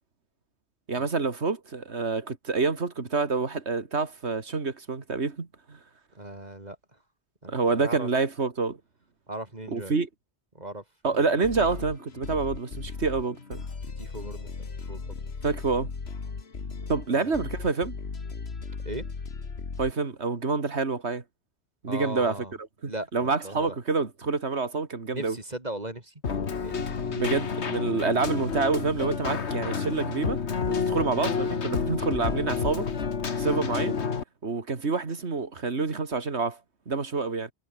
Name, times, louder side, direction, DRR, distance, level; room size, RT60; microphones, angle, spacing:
voice 1, 0.9-5.8 7.5-8.8 9.7-10.1 11.0-13.6 15.4-15.9 16.9-17.9 19.8-21.2 21.8-22.4 22.8-25.4 27.1-30.4 30.7-32.9 33.4-33.9 34.4-36.6 36.9-37.5, right 4 dB, 85° right, 2.5 m, -27 dB
voice 2, 6.1-6.8 7.4-8.1 9.3-9.9 10.5-11.7 13.8-14.5 14.9-15.2 17.1-17.4 18.8-19.0 21.9-22.5 22.8-23.8 25.1-26.1 26.6-27.5, right 1 dB, 40° right, 3.4 m, -38 dB
sound 1, 11.4-19.9, left 4 dB, 70° left, 2.1 m, -37 dB
Keyboard (musical), 26.2-34.2, left 6 dB, 90° left, 1.8 m, -29 dB
omnidirectional pair, 1.1 m